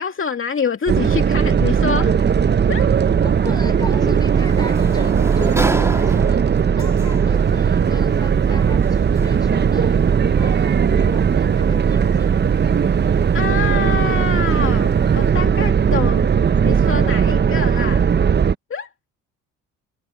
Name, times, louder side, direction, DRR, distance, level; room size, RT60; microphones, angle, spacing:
voice 1, 0.0-2.2 2.7-2.9 13.3-16.4 16.6-18.1 18.7-18.9, left 5 dB, 35° left, 2.5 m, -26 dB
sound 1, 0.9-18.5, right 7 dB, 30° right, 0.8 m, -17 dB
voice 2, 3.2-6.4 6.8-12.7, left 2 dB, 10° left, 5.9 m, -37 dB
Sliding door, 3.3-15.9, right 1 dB, 10° right, 2.8 m, -34 dB
sound 2, 7.3-15.3, right 12 dB, 65° right, 3.1 m, -38 dB
hypercardioid pair, 60°, 35 cm